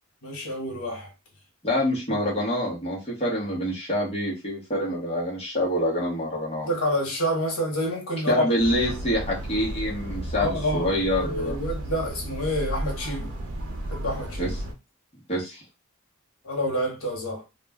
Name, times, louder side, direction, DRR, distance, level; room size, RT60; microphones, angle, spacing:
voice 1, 0.2-1.1 2.1-2.2 6.6-8.5 10.3-13.3 13.9-14.5 16.4-17.4, equal, 80° left, 1.0 m, -28 dB
voice 2, 1.6-6.7 8.3-11.6 14.4-14.5 15.3-15.6, equal, 30° left, 0.9 m, -26 dB
sound 1, 8.6-14.7, right 1 dB, 80° right, 0.6 m, -33 dB
2.4 x 2.1 x 3.3 m
head